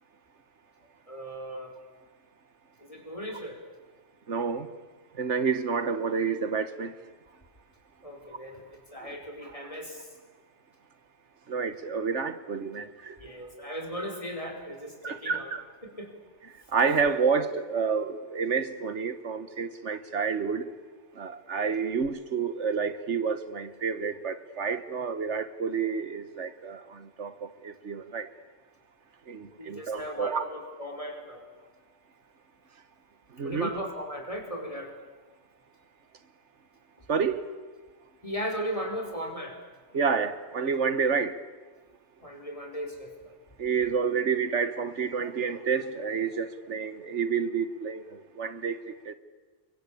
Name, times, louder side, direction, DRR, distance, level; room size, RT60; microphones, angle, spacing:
voice 1, 1.1-1.8 2.8-3.6 8.0-10.1 13.2-15.5 15.8-16.1 21.6-21.8 29.6-31.4 33.4-34.9 38.2-39.6 42.2-43.3, equal, 30° left, 3 dB, 4.9 m, -37 dB
voice 2, 4.3-4.7 5.2-6.9 9.0-9.1 11.5-13.3 15.0-15.6 16.7-20.7 21.1-28.3 29.3-30.4 33.3-33.7 37.1-37.5 39.9-41.4 43.6-48.8 49.0-49.1, right 5 dB, 80° right, 11 dB, 1.6 m, -29 dB
29.5 x 23.5 x 8.6 m, 1.3 s
omnidirectional pair, 1.2 m